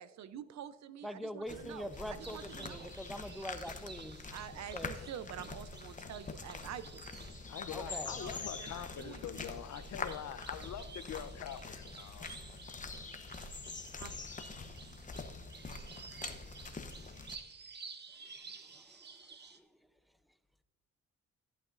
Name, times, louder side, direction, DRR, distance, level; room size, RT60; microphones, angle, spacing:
voice 1, 0.0-3.0 4.3-7.1 7.8-9.4 14.0-14.1, right 9 dB, 65° right, 14 dB, 0.7 m, -47 dB
voice 2, 1.0-4.2 4.7-4.9 7.7-8.2 18.4-19.0, equal, ahead, 10 dB, 0.6 m, -43 dB
sound 1, 1.5-17.4, left 4 dB, 25° left, 0.9 m, -45 dB
sound 2, 1.9-19.6, right 5 dB, 35° right, 1.0 m, -53 dB
voice 3, 7.5-12.3, left 10 dB, 65° left, 12 dB, 0.7 m, -44 dB
14.0 x 8.6 x 2.5 m, 1.2 s
cardioid pair, 90°, 30 cm